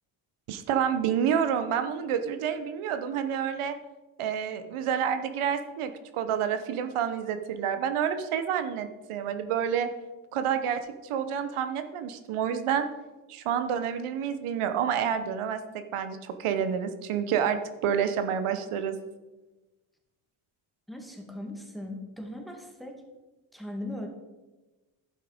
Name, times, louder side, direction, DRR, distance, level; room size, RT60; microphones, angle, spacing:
voice 1, 0.5-3.8 4.2-9.9 10.3-12.9 13.3-15.6 15.9-19.0, right 8 dB, 85° right, 9 dB, 0.9 m, -28 dB
voice 2, 20.9-23.0 23.5-24.1, left 1 dB, ahead, 2 dB, 2.1 m, -39 dB
11.5 x 5.8 x 5.0 m, 1.1 s
cardioid pair, 80°, 49 cm